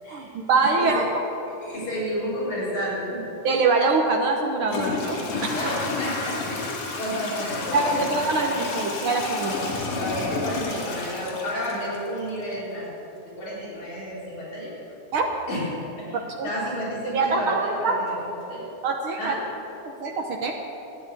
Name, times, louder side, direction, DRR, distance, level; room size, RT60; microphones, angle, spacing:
voice 1, 0.1-1.0 3.4-5.5 7.7-9.5 15.1-15.3 16.4-16.5 17.1-18.0 18.8-19.3 20.0-20.5, right 3 dB, 65° right, 3 dB, 1.3 m, -24 dB
voice 2, 0.8-1.1 1.6-3.3 5.5-8.7 9.4-9.6 9.9-12.9 13.3-14.8 15.5-18.7 19.2-19.4, equal, 65° left, -7 dB, 5.4 m, -31 dB
Toilet flush / Trickle dribble, 3.8-3.9 4.6-12.4, left 3 dB, 85° left, 3.6 m, -31 dB
13.0 x 9.9 x 8.3 m, 2.9 s
omnidirectional pair, 3.5 m